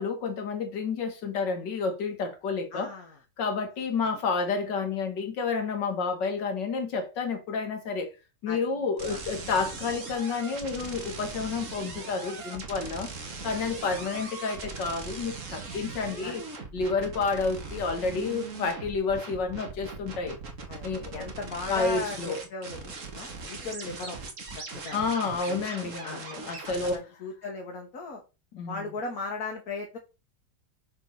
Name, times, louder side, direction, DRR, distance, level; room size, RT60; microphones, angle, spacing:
voice 1, 0.0-2.9 3.4-8.1 8.4-13.1 13.4-16.4 16.7-20.4 20.8-21.3 21.7-22.4 24.9-27.0 28.5-28.9, left 4 dB, 75° left, 2.1 m, -30 dB
voice 2, 2.7-3.2 8.5-8.6 9.0-9.2 13.3-13.5 16.2-16.4 20.7-20.8 21.1-24.2 24.6-25.0 25.5-25.6 26.0-26.2 26.6-28.2 28.7-30.0, left 3 dB, 55° left, 1.7 m, -37 dB
sound 1, 9.0-27.0, right 4 dB, 45° right, 1.9 m, -40 dB
6.0 x 4.5 x 5.5 m
omnidirectional pair, 1.9 m